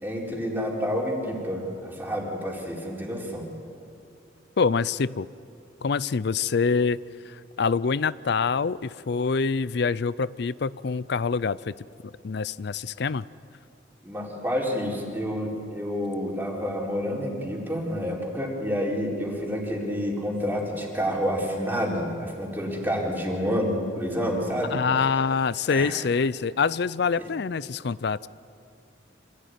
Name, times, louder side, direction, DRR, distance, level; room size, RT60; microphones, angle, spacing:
voice 1, 0.0-3.5 14.0-24.8 25.7-26.0 27.2-27.3, equal, 10° right, -2 dB, 4.1 m, -29 dB
voice 2, 4.6-5.3 5.8-7.0 7.3-11.7 12.0-13.3 24.7-28.3, left 5 dB, 60° left, 19 dB, 0.5 m, -25 dB
26.0 x 16.5 x 9.4 m, 2.5 s
head